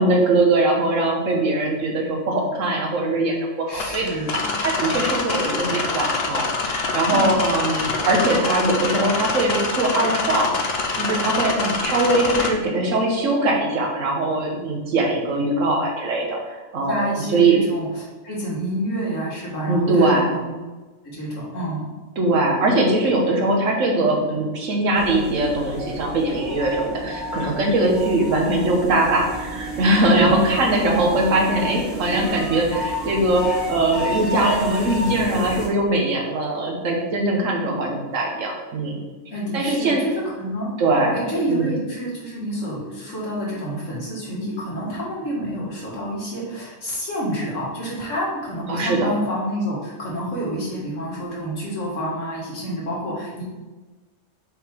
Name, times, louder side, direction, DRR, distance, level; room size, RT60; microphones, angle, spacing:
voice 1, 0.0-4.1 4.6-11.5 11.8-17.0 17.3-17.6 19.7-20.3 22.2-39.0 39.5-40.0 40.8-41.2 41.5-41.7 48.7-49.1, right 2 dB, 85° right, 0 dB, 1.5 m, -21 dB
voice 2, 3.7-4.5 7.1-7.3 11.5-11.8 16.9-20.5 21.0-21.8 30.1-30.4 39.3-40.7 41.1-53.4, equal, 75° left, -5 dB, 2.2 m, -28 dB
sound 1, 3.7-12.5, left 3 dB, 55° left, 0.9 m, -25 dB
sound 2, 24.9-35.7, equal, ahead, 1.1 m, -31 dB
5.6 x 3.8 x 4.4 m, 1.2 s
omnidirectional pair, 1.3 m